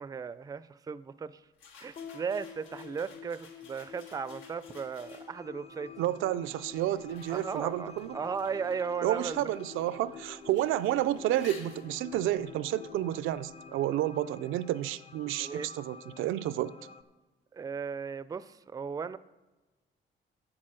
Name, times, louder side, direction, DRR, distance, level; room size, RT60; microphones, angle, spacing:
voice 1, 0.0-1.4 1.8-5.9 7.3-9.5 15.4-15.7 17.5-19.2, right 6 dB, 20° right, 16 dB, 0.4 m, -36 dB
sound 1, 1.5-5.6 6.3-13.7, left 5 dB, 90° left, 1.7 m, -56 dB
sound 2, 2.0-14.5, left 5 dB, 60° left, 1.6 m, -50 dB
sound 3, 5.0-17.0, left 5 dB, 30° left, 0.6 m, -51 dB
voice 2, 6.0-8.2 9.0-16.7, right 13 dB, 85° right, 17 dB, 0.4 m, -30 dB
8.7 x 7.3 x 6.3 m, 1.2 s
cardioid pair, 90°, 20 cm